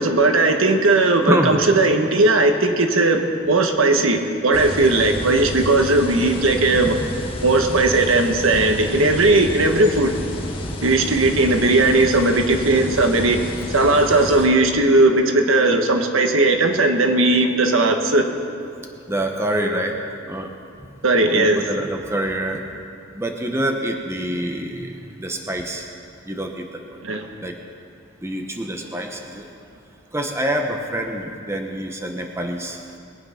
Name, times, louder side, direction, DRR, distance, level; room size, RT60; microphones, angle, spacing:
voice 1, 0.0-7.0 7.4-10.1 10.8-13.4 13.7-18.3 21.0-21.6 27.0-27.3, right 2 dB, 80° right, 5 dB, 1.3 m, -17 dB
voice 2, 1.3-1.7 19.1-20.0 20.3-20.5 21.3-22.6 23.1-25.9 26.3-26.7 27.4-27.5 28.2-29.5 30.1-33.0, right 1 dB, 15° right, 3 dB, 1.0 m, -26 dB
sound 1, 4.5-14.5, left 1 dB, 25° left, 1.4 m, -30 dB
21.5 x 8.8 x 5.8 m, 2.4 s
head